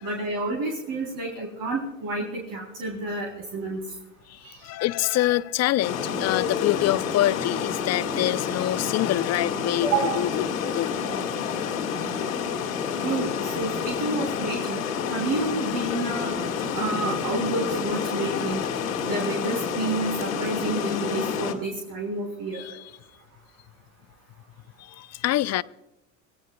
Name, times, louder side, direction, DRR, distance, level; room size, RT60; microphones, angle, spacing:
voice 1, 0.0-3.8 4.4-4.6 9.8-10.3 13.0-14.8 15.1-16.4 16.7-18.6 19.0-22.8, right 2 dB, 55° right, 3.6 m, -29 dB
voice 2, 4.3-10.5 10.8-10.9 15.9-16.3 22.5-22.8 25.0-25.6, left 15 dB, 40° left, 0.6 m, -26 dB
Water, 5.8-21.5, left 7 dB, 90° left, 2.2 m, -29 dB
26.5 x 18.0 x 2.3 m
hypercardioid pair, 80°, 39 cm